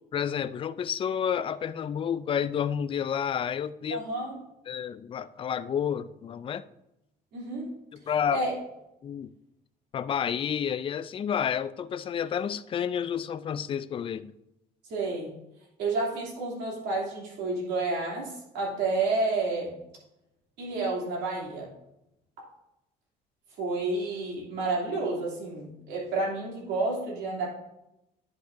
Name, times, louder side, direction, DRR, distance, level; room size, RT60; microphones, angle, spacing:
voice 1, 0.1-4.0 4.7-6.6 8.1-8.4 9.0-9.3 9.9-14.3, left 8 dB, 30° left, 0.3 m, -30 dB
voice 2, 3.9-4.4 7.3-7.7 8.3-8.6 14.9-15.3 15.8-19.7 20.6-21.7 23.6-27.5, right 3 dB, 80° right, 2.9 m, -30 dB
10.0 x 6.0 x 2.6 m
cardioid pair, 110°, 17 cm